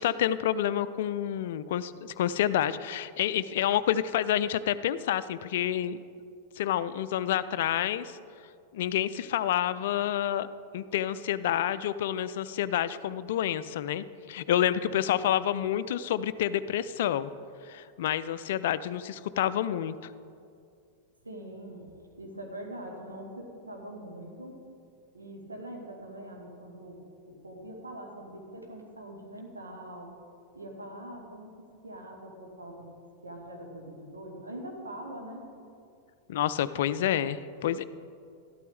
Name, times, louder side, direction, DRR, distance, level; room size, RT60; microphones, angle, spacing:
voice 1, 0.0-6.0 6.6-8.1 8.7-10.5 10.7-17.3 17.6-20.1 36.3-37.8, left 11 dB, 55° left, 15 dB, 0.3 m, -28 dB
voice 2, 21.2-21.8 22.2-24.6 25.1-27.0 27.3-30.1 30.5-32.9 33.2-35.5, right 1 dB, 80° right, 1 dB, 1.6 m, -43 dB
13.0 x 12.0 x 3.6 m, 2.4 s
figure-of-eight pair, 90°, 0 cm